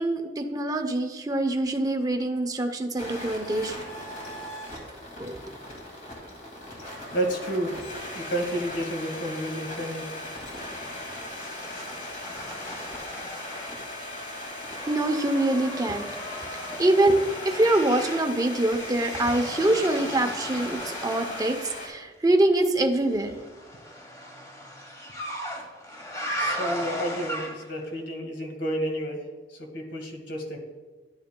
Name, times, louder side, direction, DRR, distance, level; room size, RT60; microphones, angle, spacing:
voice 1, 0.0-3.7 5.2-5.4 14.9-16.1 16.8-23.4, right 1 dB, 20° right, 6 dB, 0.6 m, -24 dB
sound 1, 3.0-21.9, left 1 dB, 45° left, 2.2 m, -38 dB
voice 2, 7.1-7.7 8.1-10.1 25.6-25.7 26.3-29.2 29.5-30.6, right 1 dB, 75° left, 3 dB, 1.6 m, -31 dB
sound 2, 10.9-14.0 14.3-21.6 23.1-27.8, equal, 15° left, 1.1 m, -37 dB
11.0 x 9.3 x 2.2 m, 1.3 s
head